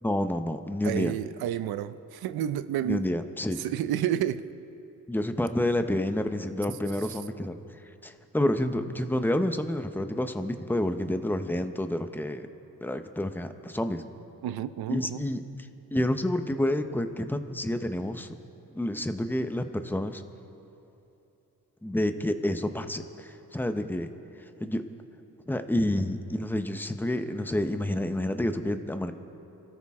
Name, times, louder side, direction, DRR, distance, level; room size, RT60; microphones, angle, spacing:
voice 1, 0.0-1.1 2.8-3.6 5.1-7.6 8.0-12.5 12.8-14.0 14.9-15.4 15.9-18.3 18.7-20.2 21.8-24.1 24.6-24.8 25.5-29.1, left 1 dB, 5° left, 8 dB, 1.0 m, -29 dB
voice 2, 0.8-3.1 3.6-4.5 14.4-15.2, right 11 dB, 80° right, 14 dB, 0.7 m, -30 dB
28.0 x 13.5 x 3.7 m, 2.9 s
cardioid pair, 75°, 37 cm